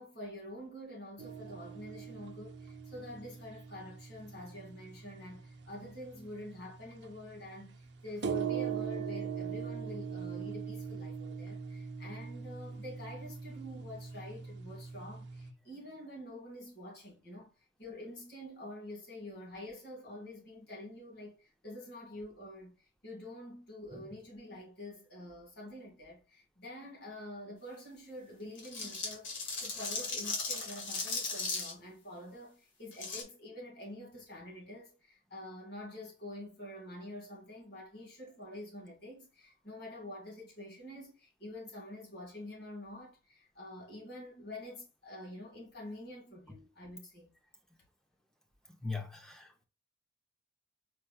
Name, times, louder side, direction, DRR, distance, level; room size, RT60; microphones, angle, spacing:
voice 1, 0.0-17.5 17.8-47.3, left 1 dB, 60° left, 2.2 m, -47 dB
sound 1, 1.2-15.5, right 7 dB, 60° right, 0.7 m, -42 dB
sound 2, 28.5-31.7 32.9-33.2, left 4 dB, 80° left, 1.7 m, -37 dB
voice 2, 48.8-49.6, left 3 dB, 5° left, 0.6 m, -41 dB
4.6 x 4.5 x 2.3 m
head